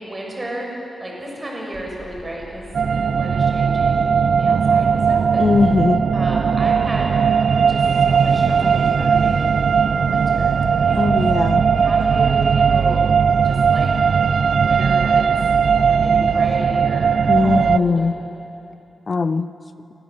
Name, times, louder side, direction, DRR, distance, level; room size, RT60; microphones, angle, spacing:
voice 1, 0.0-5.4 6.1-7.2 7.7-11.0 11.8-13.1 13.4-13.9 14.6-15.3 15.8-17.1 17.4-18.1, right 1 dB, 20° right, -1 dB, 6.4 m, -33 dB
sound 1, 1.7-16.2, equal, ahead, 6.7 m, -42 dB
sound 2, 2.7-17.8, right 6 dB, 60° right, 0.7 m, -18 dB
voice 2, 5.4-6.0 10.9-11.6 17.3-18.2 19.1-19.5, left 4 dB, 40° left, 12 dB, 0.6 m, -19 dB
sound 3, 7.8-16.6, right 4 dB, 80° right, 2.5 m, -42 dB
30.0 x 25.0 x 7.7 m, 2.8 s
wide cardioid pair, 135°, 0 cm